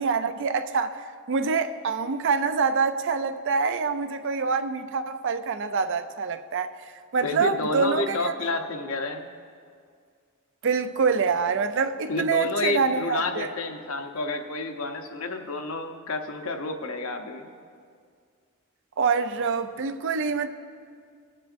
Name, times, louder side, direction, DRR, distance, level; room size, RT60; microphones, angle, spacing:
voice 1, 0.0-8.3 10.6-13.5 19.0-20.5, right 5 dB, 60° right, 10 dB, 0.5 m, -26 dB
voice 2, 7.2-9.3 12.1-17.5, left 3 dB, 75° left, 4 dB, 0.8 m, -30 dB
22.0 x 7.6 x 2.5 m, 2.2 s
head